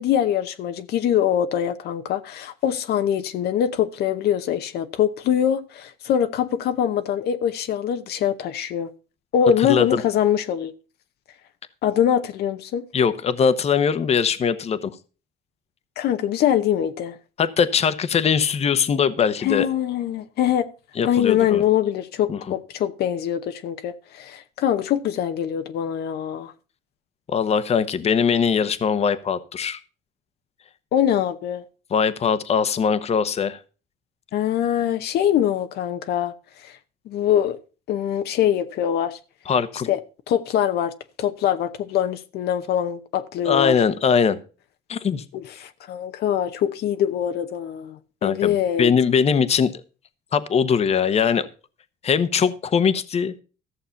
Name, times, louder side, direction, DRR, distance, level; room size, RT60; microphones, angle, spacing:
voice 1, 0.0-8.9 9.3-10.7 11.8-12.8 16.0-17.1 19.4-20.7 21.0-26.5 30.9-31.6 34.3-36.3 36.6-36.8 37.1-37.6 37.9-39.2 39.9-40.0 40.3-40.9 41.2-43.8 45.3-48.9, left 10 dB, 70° left, 0.9 m, -23 dB
voice 2, 9.6-10.0 12.9-14.9 17.4-19.7 21.0-21.6 22.3-22.4 27.3-29.8 31.9-33.6 39.5-39.9 43.4-44.4 44.9-45.2 48.2-49.8 50.3-51.5 52.0-53.3, left 6 dB, 40° left, 1.0 m, -21 dB
14.5 x 6.7 x 5.7 m
cardioid pair, 110°, 17 cm